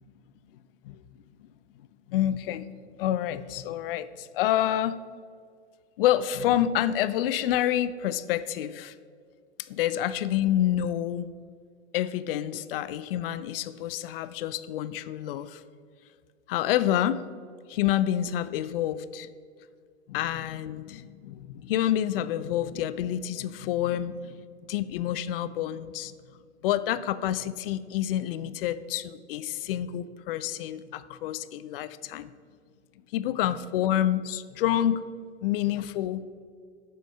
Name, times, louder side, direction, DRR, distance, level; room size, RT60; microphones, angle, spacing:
voice 1, 2.1-2.7 3.0-4.9 6.0-8.9 9.7-11.3 11.9-15.6 16.5-17.2 17.7-19.3 20.1-24.4 24.7-26.1 26.6-32.3 33.1-35.0 35.4-36.2, left 11 dB, 55° left, 15 dB, 0.4 m, -28 dB
7.6 x 5.3 x 5.5 m, 2.1 s
figure-of-eight pair, 95°, 35 cm